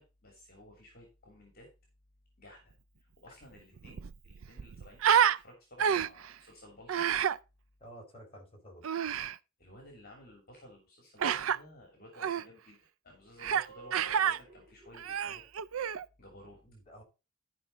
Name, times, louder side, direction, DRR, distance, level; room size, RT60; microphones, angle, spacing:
voice 1, 0.0-1.7 2.4-2.7 3.0-7.1 9.6-12.8 13.0-15.4 16.2-16.6, left 1 dB, 50° left, 3.0 m, -54 dB
Human voice, 3.4-3.5 3.8-5.4 5.8-6.3 6.9-7.4 8.8-9.3 11.2-11.6 12.2-12.4 13.4-13.7 13.9-14.4 14.9-16.0, right 8 dB, 80° right, 0.5 m, -28 dB
voice 2, 7.8-8.9 16.6-17.0, right 1 dB, 30° left, 4.0 m, -51 dB
sound 1, 11.1-11.4 13.5-15.1, right 3 dB, 40° right, 3.3 m, -53 dB
12.5 x 5.5 x 4.0 m
head